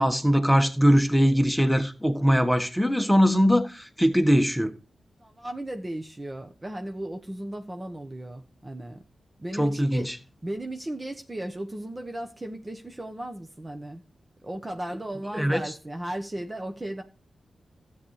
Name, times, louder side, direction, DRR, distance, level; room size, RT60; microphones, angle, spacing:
voice 1, 0.0-4.7 9.6-10.2 15.3-15.6, equal, ahead, 1.4 m, -21 dB
voice 2, 5.2-9.0 9.4-10.1 10.4-14.0 14.4-17.0, right 1 dB, 25° right, 1.1 m, -36 dB
13.0 x 8.7 x 3.2 m
cardioid pair, 60°, 0 cm